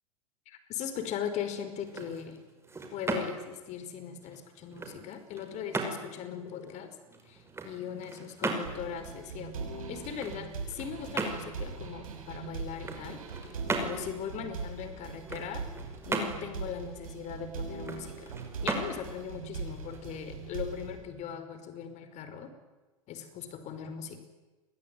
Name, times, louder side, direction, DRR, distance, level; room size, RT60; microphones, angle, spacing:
voice 1, 0.5-2.4 2.9-6.9 7.3-13.2 13.8-15.7 16.1-18.3 18.6-22.5 23.1-24.2, left 8 dB, 40° left, 10 dB, 5.1 m, -39 dB
sound 1, 1.7-20.6, right 3 dB, 15° right, 5.4 m, -39 dB
sound 2, 8.6-21.0, right 4 dB, 70° right, 7.7 m, -41 dB
29.0 x 22.0 x 9.3 m, 1.2 s
figure-of-eight pair, 95°, 18 cm